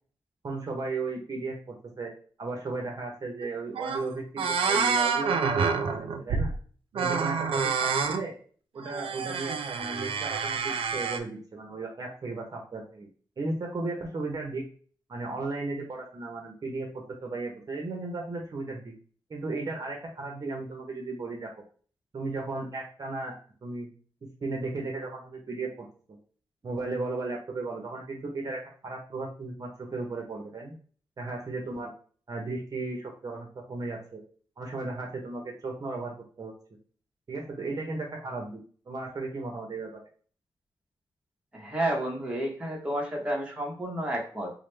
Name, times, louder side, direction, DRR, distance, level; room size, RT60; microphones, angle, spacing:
voice 1, 0.4-2.1 2.4-6.5 6.9-8.3 8.7-13.1 13.4-14.6 15.1-16.9 17.2-18.9 19.3-21.5 22.1-23.3 23.6-23.9 24.4-26.2 26.6-30.7 31.2-31.9 32.3-34.2 34.6-36.5 37.3-38.6 38.9-40.0, right 3 dB, 40° right, 0 dB, 0.7 m, -35 dB
sound 1, 3.4-3.5 3.7-4.1 4.4-6.6 6.9-8.2 8.8-11.2, right 5 dB, 85° right, 0.4 m, -28 dB
voice 2, 41.5-44.5, right 1 dB, 15° right, -2 dB, 0.8 m, -31 dB
4.7 x 2.0 x 3.2 m, 0.43 s
wide cardioid pair, 170°, 9 cm